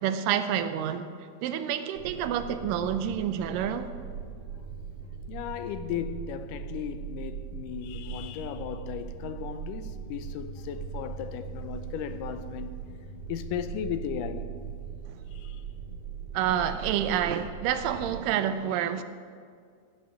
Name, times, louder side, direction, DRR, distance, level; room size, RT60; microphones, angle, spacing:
voice 1, 0.0-1.1 1.4-3.9 15.1-15.2 16.3-19.0, right 9 dB, 90° right, 2.3 m, -28 dB
sound 1, 1.9-18.2, right 7 dB, 65° right, 2.5 m, -40 dB
voice 2, 5.3-12.7 13.3-14.5 15.3-15.6, left 9 dB, 85° left, 2.2 m, -36 dB
15.0 x 6.6 x 7.4 m
omnidirectional pair, 3.9 m